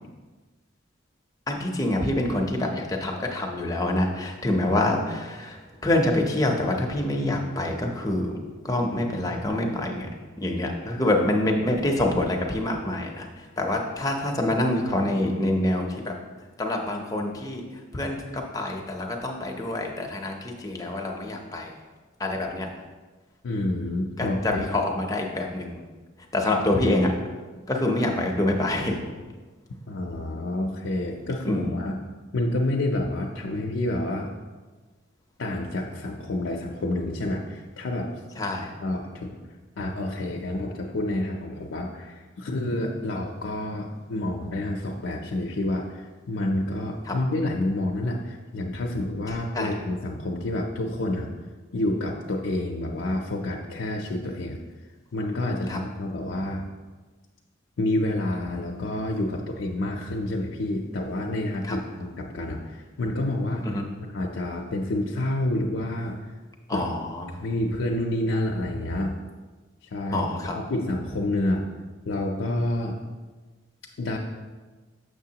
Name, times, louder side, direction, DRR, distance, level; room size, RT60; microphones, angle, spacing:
voice 1, 1.5-8.3 8.6-16.2 16.6-17.6 17.9-21.7 22.2-22.7 24.2-25.8 26.3-27.1 27.7-29.0 31.4-31.8 38.4-38.7 47.1-47.2 49.3-49.7 55.7-55.8 61.6-61.8 63.6-63.9 66.7-67.4 70.1-70.6, left 1 dB, 20° left, 1 dB, 0.7 m, -26 dB
voice 2, 23.4-24.6 29.9-32.0 32.3-34.3 35.4-38.1 38.8-39.4 39.8-51.3 51.7-54.6 55.1-56.6 57.8-63.7 64.1-66.3 66.7-66.8 67.4-69.1 69.8-70.2 70.5-71.7 72.1-73.0 74.0-74.2, left 1 dB, 75° left, -1 dB, 0.5 m, -28 dB
6.7 x 6.3 x 2.8 m, 1.3 s
head